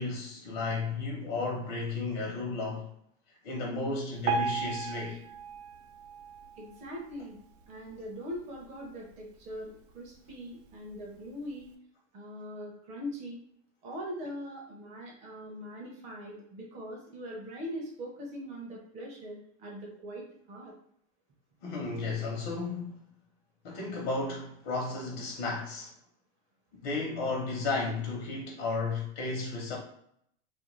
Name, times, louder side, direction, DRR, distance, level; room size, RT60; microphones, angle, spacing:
voice 1, 0.0-2.9 3.4-5.2 21.6-23.0 23.6-25.9 26.8-29.8, left 3 dB, 50° left, -1 dB, 0.8 m, -33 dB
Piano, 4.2-7.4 7.9-8.0 8.3-8.4 9.1-9.2 9.8-9.9, right 5 dB, 80° right, 0.6 m, -35 dB
voice 2, 6.6-7.4 7.7-11.7 12.1-13.4 13.8-20.7, equal, 20° right, -1 dB, 0.4 m, -41 dB
2.4 x 2.1 x 3.0 m, 0.69 s
supercardioid pair, 150°, 38 cm